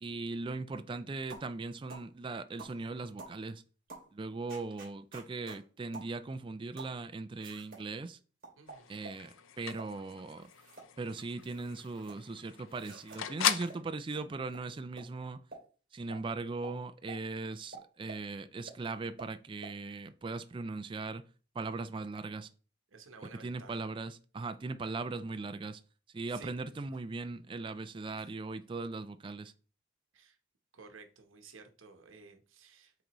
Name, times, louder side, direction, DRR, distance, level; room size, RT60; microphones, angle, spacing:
voice 1, 0.0-3.6 4.1-8.2 8.9-10.5 11.0-15.4 15.9-21.2 21.5-22.5 23.4-25.8 26.1-29.5, right 3 dB, 25° right, 0.3 m, -39 dB
sound 1, 1.3-1.5 1.9-2.1 2.6-2.8 3.2-3.4 3.9-4.1 4.5-5.6 5.9-6.1 6.8-7.0 7.4-7.8 8.4-9.2 9.7-9.9 10.4-10.9 11.2-12.2 12.7-13.2 13.7-13.8 14.1-14.2 14.5-14.6 15.0-15.1 15.5-15.6 16.1-16.2 16.6-16.8 17.1-17.2 17.7-18.2 18.7-18.8 19.2-19.3 19.6-19.7, right 3 dB, 45° right, 2.6 m, -49 dB
voice 2, 8.6-8.9 22.9-23.8 26.3-26.5 28.2-28.3 30.1-30.4 30.7-32.9, right 4 dB, 80° right, 1.0 m, -54 dB
sound 2, 8.7-13.8, left 9 dB, 80° left, 0.5 m, -38 dB
7.9 x 3.9 x 3.0 m
head